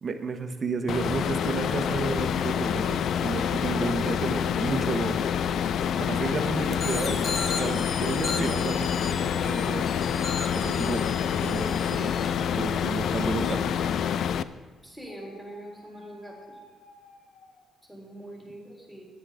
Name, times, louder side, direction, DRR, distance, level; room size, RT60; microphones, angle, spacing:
voice 1, 0.0-5.2 6.0-9.9 10.5-11.1 11.4-12.2 12.6-13.9, right 4 dB, 45° right, 7 dB, 1.2 m, -32 dB
sound 1, 0.9-14.4, left 8 dB, 70° left, 0.4 m, -27 dB
sound 2, 6.7-13.5, left 4 dB, 50° left, 1.2 m, -37 dB
voice 2, 14.8-16.6 17.9-19.0, right 1 dB, 5° left, -2 dB, 3.7 m, -43 dB
sound 3, 15.1-17.8, equal, 90° left, 4.1 m, -51 dB
10.0 x 9.9 x 5.0 m, 1.3 s
cardioid pair, 90°, 0 cm